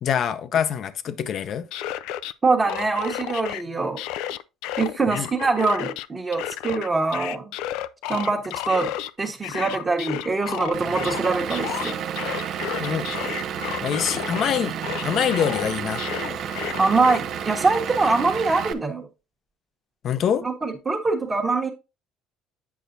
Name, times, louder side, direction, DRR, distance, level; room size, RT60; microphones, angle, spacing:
voice 1, 0.0-1.7 5.1-5.3 12.8-13.1 13.8-14.8 15.0-16.0 20.0-20.5, left 8 dB, 55° left, 0.7 m, -25 dB
sound 1, 1.5-2.3 2.7-3.6 4.0-6.1 6.3-9.1 9.4-14.5 14.8-17.2, left 12 dB, 75° left, 0.3 m, -32 dB
voice 2, 2.4-4.0 4.8-7.5 8.1-8.9 9.2-12.0 16.8-19.1 20.4-21.7, right 3 dB, 25° right, 1.3 m, -23 dB
Vehicle / Engine, 10.7-18.7, right 8 dB, 60° right, 0.8 m, -31 dB
8.4 x 5.5 x 2.7 m
supercardioid pair, 85°, 0 cm